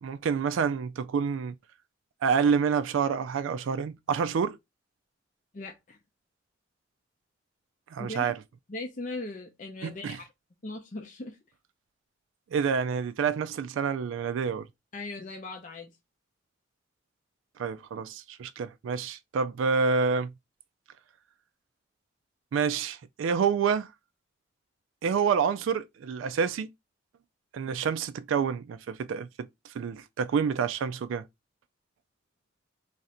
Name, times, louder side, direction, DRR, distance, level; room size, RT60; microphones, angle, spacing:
voice 1, 0.0-1.5 2.2-4.6 7.9-8.4 9.8-10.2 12.5-14.7 17.6-20.3 22.5-23.9 25.0-26.7 27.5-29.3 29.8-31.2, right 6 dB, 85° right, 0.3 m, -28 dB
voice 2, 5.5-6.0 8.0-8.3 8.7-10.2 10.6-11.4 14.9-15.9, left 2 dB, 40° left, 0.5 m, -39 dB
3.2 x 2.5 x 4.1 m
head